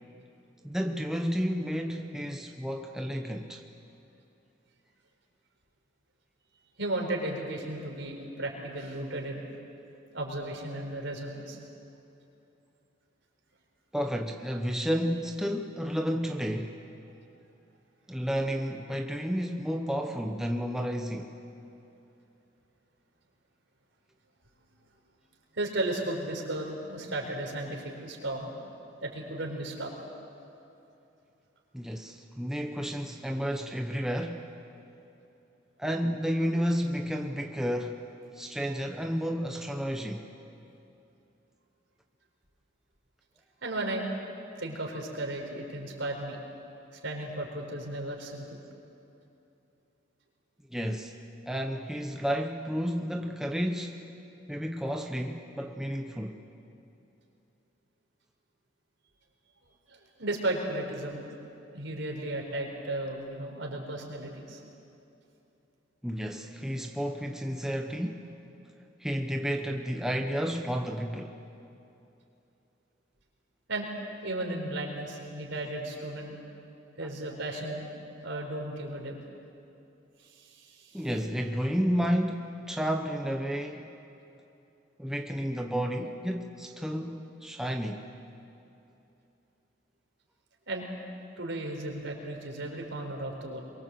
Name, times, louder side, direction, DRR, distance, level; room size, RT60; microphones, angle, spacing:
voice 1, 0.6-3.6 13.9-16.8 18.1-21.3 31.7-34.4 35.8-38.1 38.3-40.3 50.7-51.1 51.5-54.0 54.5-56.4 66.0-68.3 69.0-71.4 80.9-83.9 85.0-88.1, equal, 5° right, 3 dB, 0.9 m, -31 dB
voice 2, 6.8-9.5 10.1-11.6 25.5-28.5 29.0-29.9 43.6-44.0 44.6-46.4 47.0-48.6 59.9-61.2 61.7-64.6 73.7-73.9 74.2-76.4 77.0-77.9 78.2-79.2 80.2-81.0 90.7-90.9 91.4-93.6, right 1 dB, 70° right, 1 dB, 4.4 m, -35 dB
23.0 x 23.0 x 7.8 m, 2.8 s
head